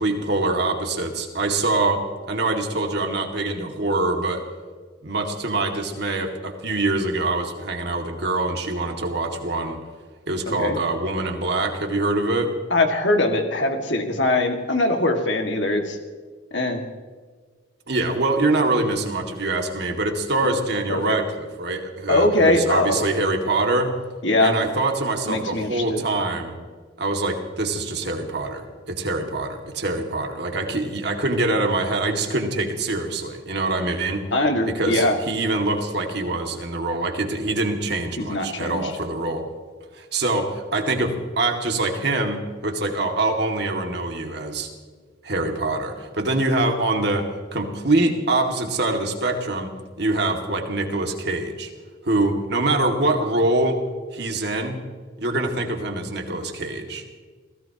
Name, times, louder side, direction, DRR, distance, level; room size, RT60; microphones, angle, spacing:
voice 1, 0.0-4.4 5.0-9.8 10.3-12.5 17.9-24.0 24.4-26.6 27.0-34.2 34.6-39.4 39.9-44.7 45.2-51.7 52.0-53.8 54.1-54.8 55.2-57.0, right 2 dB, 60° right, 3 dB, 2.2 m, -24 dB
voice 2, 10.5-10.8 12.7-16.0 16.5-16.8 20.9-21.2 22.1-23.1 24.2-24.6 25.3-26.0 34.3-35.2 38.2-38.9, left 2 dB, 70° left, 3 dB, 2.1 m, -21 dB
28.0 x 17.0 x 3.0 m, 1.5 s
head